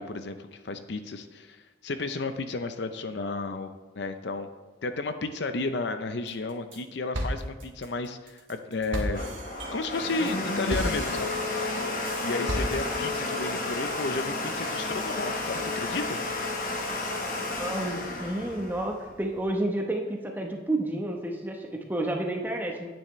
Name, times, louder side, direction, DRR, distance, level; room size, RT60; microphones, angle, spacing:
voice 1, 0.0-1.6 1.8-4.5 4.8-9.2 9.7-11.3 12.2-16.2, left 3 dB, 60° left, 9 dB, 0.5 m, -33 dB
sound 1, 6.3-6.8 7.1-13.2, right 1 dB, 80° right, 1.3 m, -35 dB
Domestic sounds home sounds, 8.8-19.5, left 2 dB, 45° left, 1.0 m, -32 dB
voice 2, 17.3-22.9, right 1 dB, 10° right, 1 dB, 0.9 m, -30 dB
10.0 x 9.0 x 3.1 m, 1.4 s
head